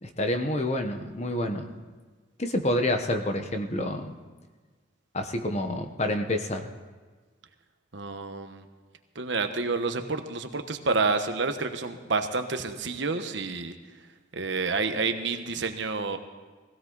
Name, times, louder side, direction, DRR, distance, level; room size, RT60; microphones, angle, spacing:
voice 1, 0.0-1.7 2.4-4.1 5.1-6.7, left 1 dB, 35° left, 6 dB, 1.1 m, -28 dB
voice 2, 7.9-8.6 9.1-13.7 14.4-16.2, right 4 dB, 65° right, 7 dB, 1.2 m, -29 dB
20.5 x 16.0 x 4.0 m, 1.4 s
head